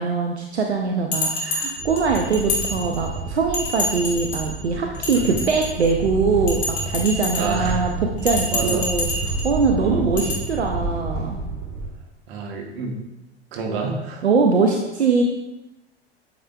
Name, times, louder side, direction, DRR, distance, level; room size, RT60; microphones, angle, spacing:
voice 1, 0.0-11.4 14.2-15.2, right 4 dB, 90° right, 2 dB, 0.5 m, -22 dB
Bell, 1.1-3.2 3.5-4.5 4.9-6.0 6.5-7.7 8.2-9.5 10.2-10.3, left 2 dB, 45° left, 2.1 m, -28 dB
sound 1, 1.8-11.9, right 3 dB, 45° right, 2.0 m, -30 dB
voice 2, 7.3-7.9 8.5-8.9 9.8-10.1 12.3-12.9 13.5-14.2, right 4 dB, 65° right, 3 dB, 1.2 m, -28 dB
8.5 x 4.9 x 2.3 m, 0.98 s
figure-of-eight pair, 80°, 32 cm